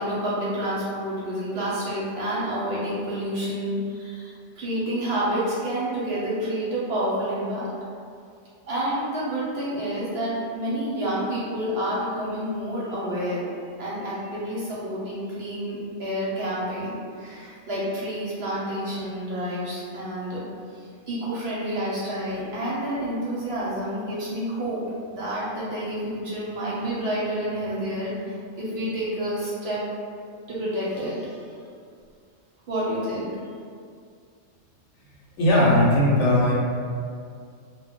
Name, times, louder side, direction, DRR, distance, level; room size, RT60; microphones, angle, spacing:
voice 1, 0.0-7.7 8.7-13.4 13.8-20.4 20.7-24.8 25.1-29.8 30.5-31.7 32.7-33.3, right 1 dB, 60° right, -7 dB, 0.7 m, -29 dB
voice 2, 35.4-36.5, left 1 dB, 65° left, -6 dB, 0.9 m, -18 dB
2.1 x 2.1 x 3.5 m, 2.3 s
omnidirectional pair, 1.3 m